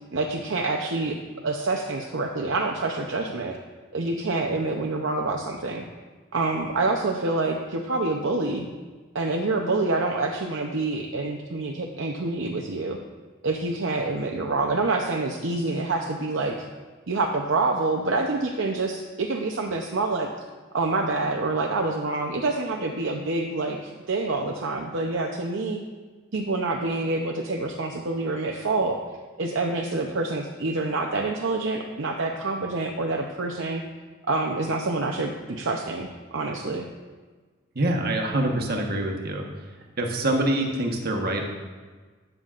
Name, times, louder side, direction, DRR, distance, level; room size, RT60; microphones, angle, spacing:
voice 1, 0.1-1.2 1.4-3.6 3.9-5.9 6.3-8.7 9.1-13.0 13.4-16.6 17.1-20.3 20.7-25.8 26.3-29.0 29.4-33.8 34.3-36.9, right 3 dB, 65° right, 2 dB, 0.7 m, -27 dB
voice 2, 37.7-39.5 40.0-41.4, right 1 dB, 50° right, 2 dB, 1.2 m, -25 dB
13.0 x 9.1 x 2.5 m, 1.4 s
head